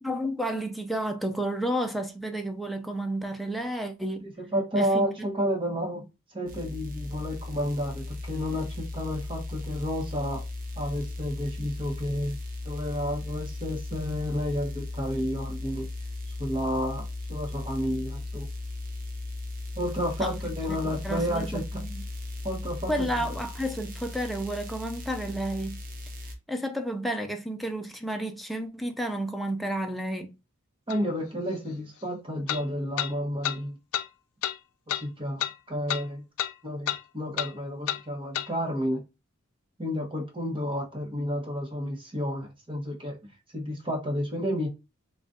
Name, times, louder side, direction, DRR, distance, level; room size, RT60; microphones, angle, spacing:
voice 1, 0.0-4.2 4.7-5.1 20.2-20.3 21.0-22.0 22.9-25.8 26.5-30.3, right 1 dB, ahead, 0.5 m, -31 dB
voice 2, 4.2-6.1 6.3-10.4 10.8-12.4 12.6-15.9 16.4-18.5 19.8-21.8 22.4-23.3 30.9-33.8 34.9-35.4 35.7-36.2 36.6-39.0 39.8-44.7, equal, 25° right, 1.1 m, -31 dB
sound 1, 6.5-26.3, left 2 dB, 40° right, 0.7 m, -37 dB
sound 2, 30.9-31.0 32.5-32.6 33.0-33.1 33.4-33.6 33.9-34.1 34.4-34.6 34.9-35.0 35.4-35.5 35.9-36.0 36.4-36.5 36.9-37.0 37.4-37.5 37.9-38.0 38.3-38.5, left 11 dB, 85° left, 0.4 m, -29 dB
3.9 x 2.4 x 3.5 m
head